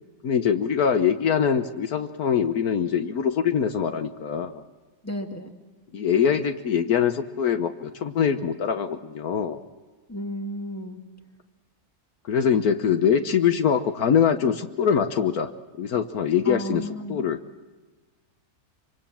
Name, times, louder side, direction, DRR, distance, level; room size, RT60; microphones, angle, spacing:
voice 1, 0.2-4.6 5.9-9.6 12.3-15.5 15.8-16.8 17.1-17.4, left 7 dB, 75° left, 9 dB, 1.5 m, -23 dB
voice 2, 5.0-5.5 10.1-11.0 16.4-17.2, equal, 10° left, 3 dB, 2.3 m, -33 dB
25.0 x 25.0 x 7.4 m, 1.3 s
omnidirectional pair, 1.6 m